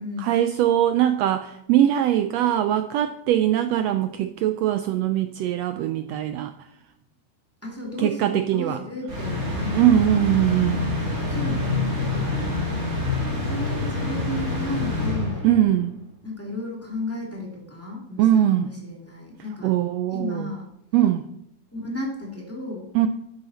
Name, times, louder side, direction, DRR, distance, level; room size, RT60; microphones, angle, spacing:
voice 1, 0.2-6.5 8.0-8.8 9.7-10.8 15.4-15.9 18.2-18.7 19.6-20.5 20.9-21.2 22.9-23.1, right 12 dB, 90° right, 9 dB, 1.4 m, -21 dB
voice 2, 7.6-11.7 12.0-12.4 13.4-15.5 16.2-19.7 20.1-20.7 21.7-22.9, left 2 dB, 5° left, -2 dB, 2.4 m, -33 dB
sound 1, 9.1-15.8, left 2 dB, 30° right, 2.9 m, -26 dB
12.0 x 8.9 x 4.2 m, 0.81 s
omnidirectional pair, 3.5 m